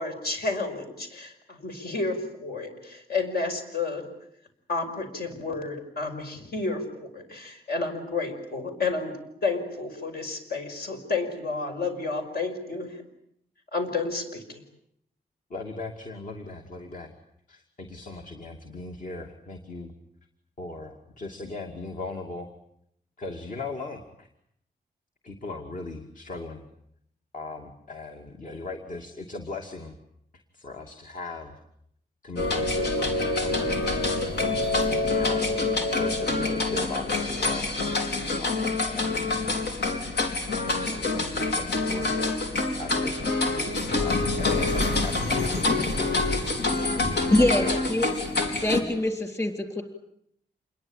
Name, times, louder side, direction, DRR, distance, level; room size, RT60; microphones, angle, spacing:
voice 1, 0.0-4.1 4.7-9.1 9.4-13.0 13.7-14.6, left 3 dB, 70° left, 5 dB, 5.5 m, -31 dB
voice 2, 15.5-17.1 17.5-19.9 20.6-22.5 23.2-24.3 25.2-26.6 27.3-29.9 30.5-31.5 32.2-34.0 34.9-37.7 38.4-39.7 40.7-46.3 47.5-47.7, left 2 dB, 50° left, 4 dB, 2.6 m, -38 dB
sound 1, 32.4-48.8, left 3 dB, 90° left, 4.2 m, -26 dB
voice 3, 47.3-48.1 48.6-49.8, left 1 dB, 20° left, 5 dB, 3.6 m, -24 dB
27.5 x 22.0 x 8.9 m, 0.73 s
wide cardioid pair, 130°, 17 cm